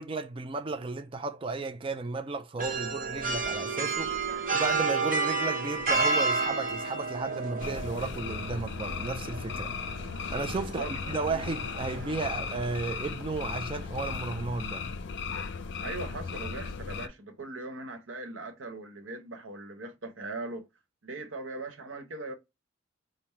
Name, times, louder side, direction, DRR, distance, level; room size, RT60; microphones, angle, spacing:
voice 1, 0.0-9.7 10.3-14.9, right 3 dB, 25° right, 0.4 m, -34 dB
sound 1, 2.6-12.9, right 4 dB, 45° right, 1.0 m, -32 dB
sound 2, 7.6-17.1, left 5 dB, 65° left, 0.5 m, -36 dB
voice 2, 10.6-10.9 15.8-20.6 21.0-22.3, right 2 dB, 85° right, 1.0 m, -39 dB
5.5 x 2.1 x 4.4 m
head